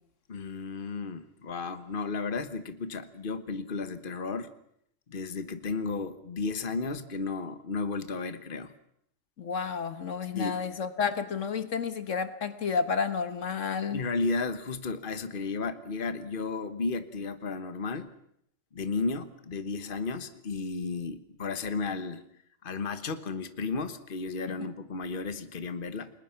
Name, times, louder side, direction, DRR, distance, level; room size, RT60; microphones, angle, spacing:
voice 1, 0.3-4.5 5.1-8.7 10.3-10.6 13.8-18.1 18.7-22.2 22.6-26.1, left 4 dB, 45° left, 10 dB, 1.4 m, -33 dB
voice 2, 9.4-14.0 24.5-24.6, left 6 dB, 75° left, 11 dB, 1.6 m, -31 dB
30.0 x 20.5 x 5.8 m, 0.72 s
omnidirectional pair, 1.3 m